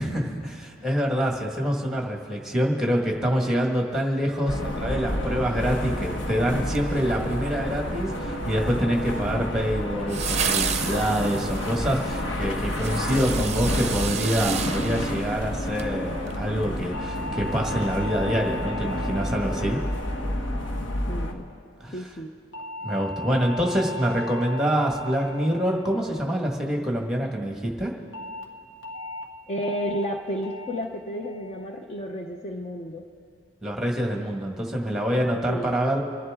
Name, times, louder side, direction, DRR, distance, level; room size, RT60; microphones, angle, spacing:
voice 1, 0.0-19.8 21.8-22.0 22.8-27.9 33.6-36.0, equal, ahead, 0 dB, 1.5 m, -26 dB
sound 1, 4.5-21.3, left 1 dB, 65° left, 1.2 m, -29 dB
sound 2, 6.7-7.6 10.1-15.9 16.3-16.4, right 8 dB, 35° right, 0.6 m, -32 dB
sound 3, 16.9-21.4 22.5-27.0 28.1-28.4 28.8-29.2 29.6-30.0 30.4-30.8 31.2-31.6 32.0-32.4, left 2 dB, 85° left, 1.5 m, -38 dB
voice 2, 21.1-21.4 21.9-22.3 29.5-33.0 35.5-35.7, equal, 35° left, 3 dB, 0.6 m, -32 dB
26.5 x 11.0 x 3.6 m, 2.3 s
head